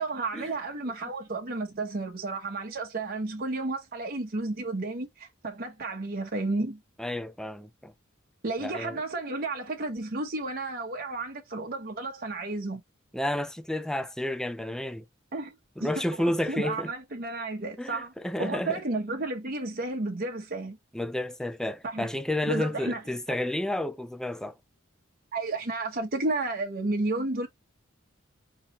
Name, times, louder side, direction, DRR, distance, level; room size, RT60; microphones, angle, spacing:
voice 1, 0.0-6.8 8.4-12.8 15.3-15.5 15.8-18.1 18.4-20.8 21.8-22.1 22.5-23.0 25.3-27.5, right 2 dB, 50° right, 0.9 m, -32 dB
voice 2, 7.0-7.9 8.6-9.0 13.1-15.0 15.8-16.9 17.8-18.8 20.9-24.5, left 1 dB, 5° left, 0.4 m, -31 dB
5.5 x 2.9 x 2.9 m
head